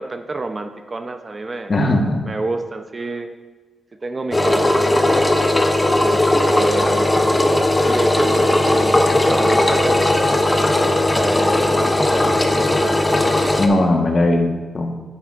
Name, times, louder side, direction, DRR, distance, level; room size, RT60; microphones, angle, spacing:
voice 1, 0.0-1.8 2.3-3.3 4.0-5.3 6.0-6.2 6.5-7.2 7.8-13.1, right 3 dB, 30° right, 7 dB, 0.4 m, -29 dB
voice 2, 1.7-2.2 13.6-15.0, left 1 dB, 35° left, 2 dB, 1.1 m, -18 dB
Engine, 4.3-13.7, left 1 dB, 15° left, 0.6 m, -17 dB
9.9 x 9.7 x 2.4 m, 1.3 s
cardioid pair, 115°, 0 cm